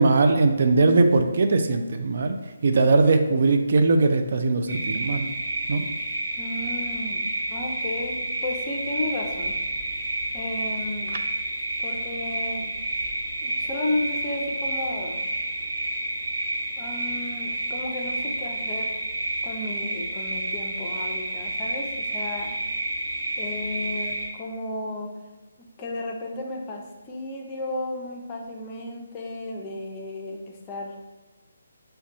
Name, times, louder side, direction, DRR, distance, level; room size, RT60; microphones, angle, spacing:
voice 1, 0.0-2.4 2.6-5.2 5.7-5.8, right 3 dB, 55° right, 5 dB, 0.3 m, -20 dB
sound 1, 4.7-24.3, right 1 dB, 35° right, 1.0 m, -30 dB
voice 2, 6.4-7.2 7.5-9.6 9.8-11.1 11.8-12.7 13.4-15.3 16.8-18.9 19.4-22.5 23.4-25.1 25.6-31.0, left 2 dB, 20° left, 0 dB, 0.6 m, -33 dB
5.8 x 2.2 x 2.7 m, 1.2 s
figure-of-eight pair, 150°, 0 cm